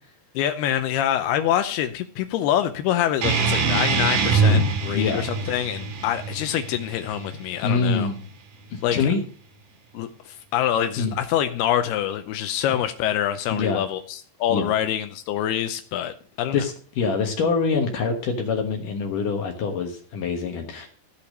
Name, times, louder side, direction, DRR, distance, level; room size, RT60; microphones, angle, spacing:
voice 1, 0.4-8.1 8.8-9.1 9.9-16.6, left 11 dB, 80° left, 9 dB, 2.6 m, -25 dB
sound 1, 3.2-8.3, right 3 dB, 65° right, 3.1 m, -24 dB
voice 2, 4.9-5.3 7.6-8.2 8.7-9.2 11.0-11.2 13.5-13.8 14.5-14.7 16.5-20.9, left 5 dB, 65° left, 3 dB, 2.6 m, -25 dB
15.0 x 5.7 x 6.5 m, 0.43 s
omnidirectional pair, 4.7 m